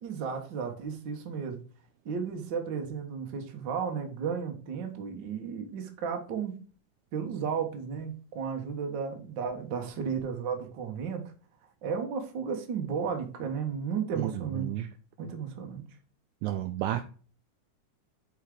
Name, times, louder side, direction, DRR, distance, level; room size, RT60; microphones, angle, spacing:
voice 1, 0.0-1.6 2.0-6.5 7.1-11.3 11.8-14.9 15.2-15.8, right 6 dB, 60° right, 4 dB, 1.2 m, -34 dB
voice 2, 14.2-14.9 16.4-17.0, right 13 dB, 85° right, 8 dB, 1.7 m, -31 dB
7.2 x 4.9 x 3.7 m, 0.39 s
omnidirectional pair, 3.9 m